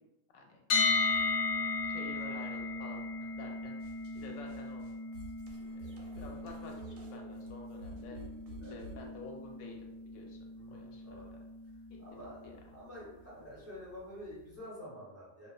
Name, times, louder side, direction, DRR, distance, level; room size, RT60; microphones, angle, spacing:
sound 1, 0.7-12.6, left 4 dB, 65° left, 0.8 m, -36 dB
voice 1, 1.9-3.8 4.1-4.9 5.7-8.2 8.5-11.4 11.9-12.0 12.4-12.6, left 3 dB, 90° left, 1 dB, 1.0 m, -50 dB
sound 2, 3.8-9.1, right 2 dB, 90° right, 1.0 m, -50 dB
voice 2, 10.6-11.3 12.0-15.5, equal, 20° right, -8 dB, 0.5 m, -48 dB
2.3 x 2.3 x 2.3 m, 0.98 s
omnidirectional pair, 1.4 m